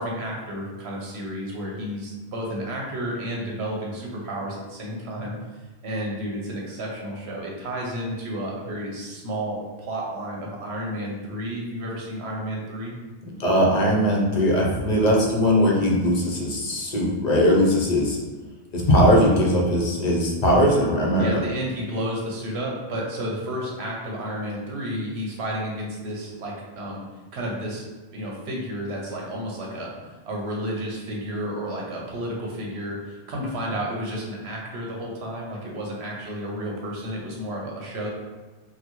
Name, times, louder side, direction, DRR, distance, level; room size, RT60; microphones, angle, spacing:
voice 1, 0.0-5.4 5.8-12.9 21.2-27.0 27.3-27.8 28.1-29.9 30.3-38.1, equal, 70° right, -2 dB, 1.0 m, -31 dB
voice 2, 13.4-18.2 18.7-21.4, equal, 45° left, -2 dB, 0.6 m, -20 dB
3.8 x 2.2 x 3.0 m, 1.2 s
omnidirectional pair, 1.2 m